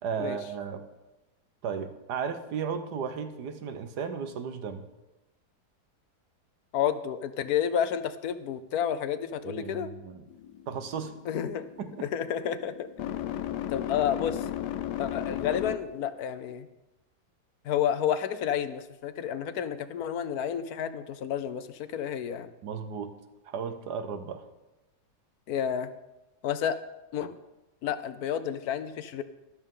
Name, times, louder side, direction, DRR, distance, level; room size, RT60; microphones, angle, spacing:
voice 1, 0.0-0.8 1.6-4.8 9.4-10.3 10.7-11.1 11.8-12.1 22.6-23.2 23.4-24.4, right 6 dB, 80° right, 8 dB, 1.6 m, -35 dB
voice 2, 6.7-9.9 11.3-11.6 12.0-12.9 13.7-14.4 15.0-16.7 17.6-22.5 25.5-25.9 26.4-26.8 27.1-27.3 27.8-29.2, left 9 dB, 70° left, 12 dB, 1.1 m, -30 dB
sound 1, 10.3-16.1, left 11 dB, 90° left, 1.2 m, -36 dB
13.0 x 12.0 x 3.8 m, 1.0 s
omnidirectional pair, 1.8 m